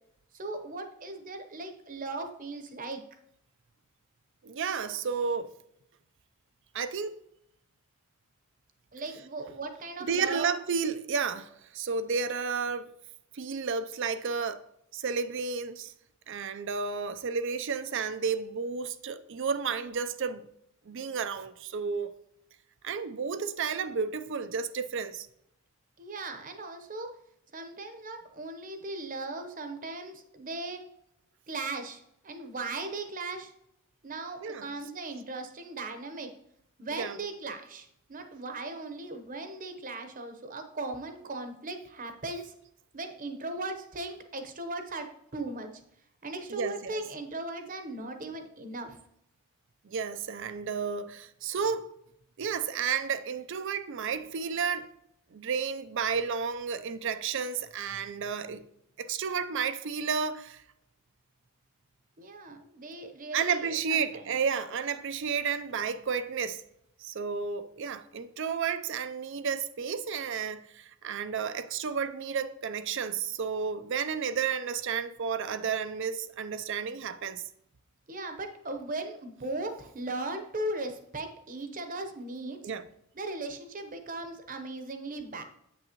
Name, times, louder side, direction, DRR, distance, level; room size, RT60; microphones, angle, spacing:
voice 1, 0.3-3.0 8.9-10.5 26.0-27.1 27.5-30.8 31.5-33.5 34.0-36.3 36.8-42.5 42.9-45.1 45.3-45.7 46.2-49.0 62.2-64.3 78.1-82.6 83.1-85.4, right 2 dB, 40° right, 0.8 m, -38 dB
voice 2, 4.4-5.5 6.7-7.1 10.0-12.9 13.3-14.6 14.9-15.9 16.3-20.5 20.9-22.1 22.8-25.3 34.4-34.7 37.0-37.2 46.5-47.0 49.8-51.9 52.4-54.9 55.3-58.6 59.0-60.6 63.3-66.6 67.0-77.4 82.6-82.8, right 6 dB, 55° right, 0.5 m, -32 dB
8.3 x 6.3 x 2.9 m
head